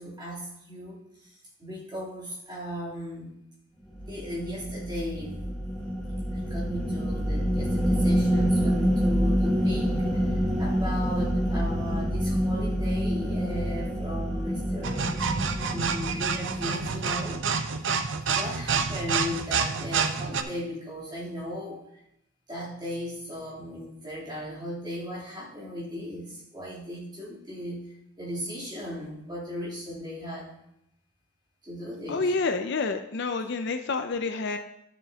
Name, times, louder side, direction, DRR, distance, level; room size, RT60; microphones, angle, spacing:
voice 1, 0.0-3.4 4.0-5.4 6.3-15.1 15.7-17.5 18.3-21.8 22.5-27.8 28.2-30.5 31.6-32.3, left 1 dB, 20° right, -8 dB, 3.1 m, -37 dB
sound 1, 3.9-17.5, equal, ahead, 1.5 m, -27 dB
sound 2, 14.8-20.4, right 5 dB, 60° right, 0.6 m, -28 dB
voice 2, 32.1-34.6, left 3 dB, 50° left, 7 dB, 0.5 m, -28 dB
12.0 x 7.4 x 2.8 m, 0.81 s
head